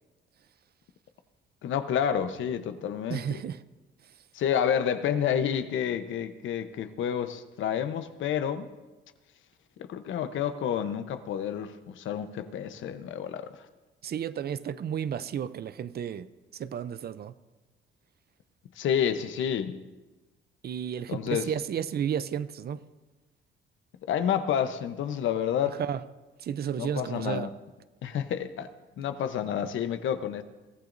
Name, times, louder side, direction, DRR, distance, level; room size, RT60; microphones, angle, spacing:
voice 1, 1.6-3.4 4.3-8.7 9.9-13.5 18.8-19.8 21.1-21.5 24.1-25.8 26.8-27.5 28.0-28.7 29.0-30.4, left 8 dB, 75° left, 0.9 m, -29 dB
voice 2, 3.1-3.6 14.0-16.3 16.5-17.3 20.6-22.9 25.8-26.0 26.4-27.5, right 8 dB, 55° right, 0.6 m, -32 dB
22.5 x 15.0 x 2.6 m
cardioid pair, 90°, 20 cm